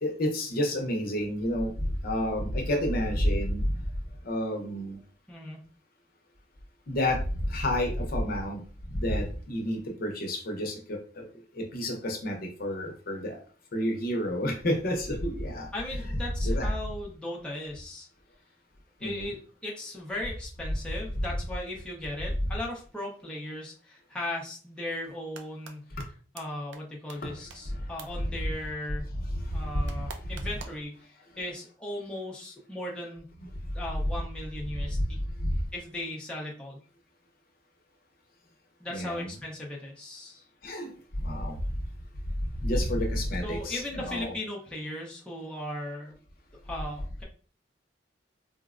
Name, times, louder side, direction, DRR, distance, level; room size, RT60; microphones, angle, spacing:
voice 1, 0.0-1.7 2.0-3.6 4.3-5.0 6.9-7.2 7.5-8.6 9.0-11.2 11.7-13.4 13.7-15.7 16.4-16.7 19.0-19.3 27.2-27.3 38.9-39.3 40.6-40.9 41.2-41.5 42.6-44.3, left 1 dB, 55° left, 2 dB, 0.7 m, -29 dB
voice 2, 5.3-5.7 15.7-18.1 19.0-26.0 26.3-29.1 29.5-33.3 33.7-35.2 35.7-36.8 38.8-40.4 43.4-46.2 46.6-47.2, left 1 dB, 5° left, -4 dB, 0.6 m, -37 dB
sound 1, 25.1-25.7 26.0-26.1 26.4-26.5 26.7-26.8 27.1-27.2 27.5-27.6 28.0-28.1 29.9-30.8, right 5 dB, 75° right, 0.4 m, -44 dB
3.8 x 2.1 x 2.4 m, 0.40 s
head